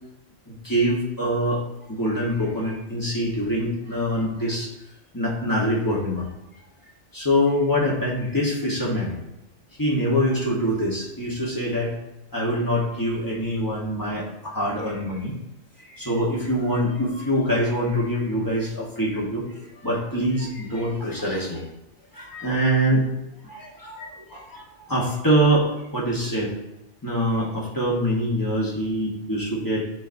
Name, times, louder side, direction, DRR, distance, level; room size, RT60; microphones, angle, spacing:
voice 1, 0.6-1.6 1.9-4.7 5.1-6.3 7.1-9.1 9.8-11.9 12.3-15.3 16.0-19.5 19.8-21.6 22.2-23.0 23.5-24.1 24.9-26.5 27.0-29.8, equal, 15° left, -4 dB, 1.2 m, -24 dB
11.0 x 3.8 x 2.7 m, 0.88 s
omnidirectional pair, 1.4 m